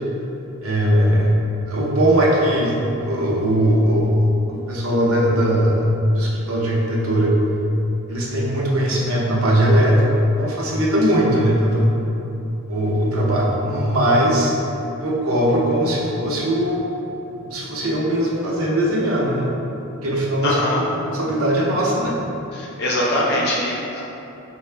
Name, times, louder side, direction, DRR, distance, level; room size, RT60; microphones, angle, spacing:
voice 1, 0.6-1.3 1.7-5.8 6.1-7.3 8.1-10.0 10.4-11.9 12.7-14.5 15.0-16.8 17.4-19.5 20.0-20.6 21.1-22.1, equal, 85° right, -4 dB, 0.7 m, -19 dB
voice 2, 20.4-20.8 22.5-24.0, left 1 dB, 50° left, -5 dB, 0.7 m, -22 dB
4.6 x 2.3 x 3.2 m, 2.9 s
head